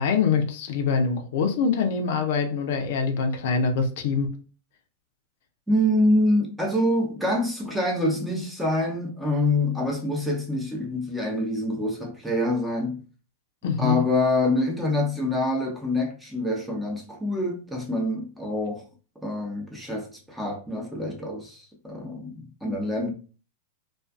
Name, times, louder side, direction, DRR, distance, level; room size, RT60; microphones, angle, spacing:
voice 1, 0.0-4.3 13.6-14.0, left 5 dB, 65° left, 0.5 m, -24 dB
voice 2, 5.7-13.0 13.8-18.8 19.2-23.1, left 1 dB, 5° right, 0.8 m, -26 dB
2.4 x 2.4 x 2.3 m
hypercardioid pair, 105°, 0 cm